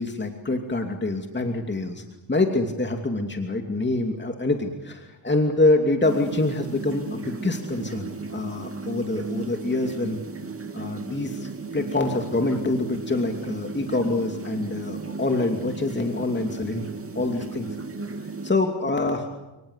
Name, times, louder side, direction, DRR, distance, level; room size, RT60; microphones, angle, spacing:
voice 1, 0.0-2.0 2.3-10.2 10.7-16.9 17.1-17.7 18.2-19.3, left 2 dB, 20° left, 4 dB, 2.7 m, -25 dB
sound 1, 6.0-18.5, right 3 dB, 30° right, 2.6 m, -35 dB
30.0 x 19.0 x 8.3 m, 1.1 s
cardioid pair, 75°, 48 cm